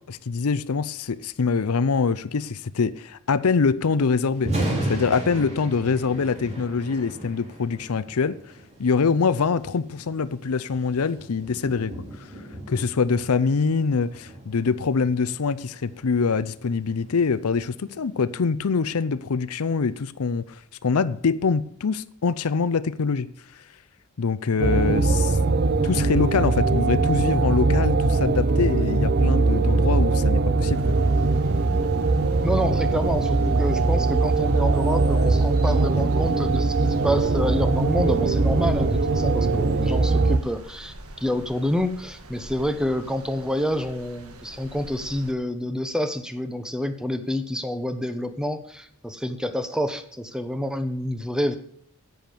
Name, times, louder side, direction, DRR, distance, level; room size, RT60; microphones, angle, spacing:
voice 1, 0.1-8.4 8.8-11.9 12.7-23.3 24.2-25.4 25.8-31.0, left 5 dB, 75° left, 0.6 m, -24 dB
Thunder, 4.3-18.5, right 1 dB, 30° right, 3.6 m, -36 dB
sound 1, 24.6-40.4, right 3 dB, 45° right, 0.7 m, -21 dB
sound 2, 30.7-45.3, right 1 dB, 80° right, 1.6 m, -44 dB
voice 2, 32.4-51.6, equal, 5° right, 1.0 m, -28 dB
10.5 x 7.9 x 6.9 m
head